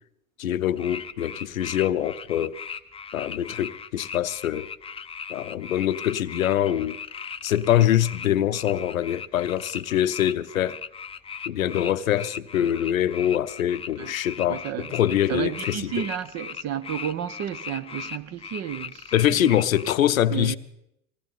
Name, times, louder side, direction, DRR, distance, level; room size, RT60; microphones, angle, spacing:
voice 1, 0.4-2.6 3.1-4.7 5.3-7.0 7.4-10.8 11.5-14.6 14.9-15.9 19.1-20.6, left 11 dB, 85° left, 0.6 m, -24 dB
sound 1, 0.8-20.0, left 6 dB, 15° left, 0.6 m, -38 dB
voice 2, 14.5-14.9 15.3-19.6 20.3-20.6, right 10 dB, 40° right, 1.0 m, -32 dB
20.0 x 17.0 x 4.1 m
hypercardioid pair, 80°, 40 cm